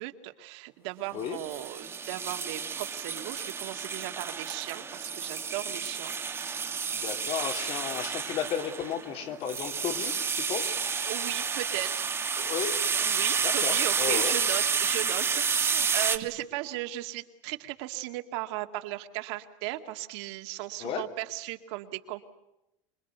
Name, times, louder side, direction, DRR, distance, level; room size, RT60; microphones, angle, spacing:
voice 1, 0.0-6.1 11.0-12.1 13.0-22.2, right 16 dB, 65° right, 6 dB, 2.2 m, -36 dB
sound 1, 1.3-16.2, right 6 dB, 15° right, 1.5 m, -30 dB
voice 2, 6.9-10.8 12.4-12.7 13.4-14.3 20.8-21.0, left 8 dB, 40° left, 5 dB, 3.3 m, -34 dB
27.0 x 22.5 x 8.2 m, 0.90 s
supercardioid pair, 160°, 15 cm